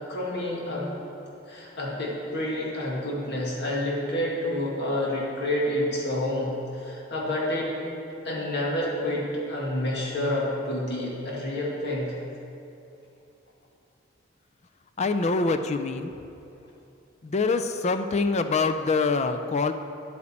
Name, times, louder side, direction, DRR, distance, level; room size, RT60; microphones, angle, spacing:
voice 1, 0.1-0.9 1.5-7.7 8.2-12.1, left 1 dB, 60° left, -4 dB, 2.0 m, -29 dB
voice 2, 15.0-16.1 17.2-19.7, left 4 dB, 35° left, 8 dB, 0.4 m, -25 dB
9.9 x 8.4 x 4.3 m, 2.7 s
head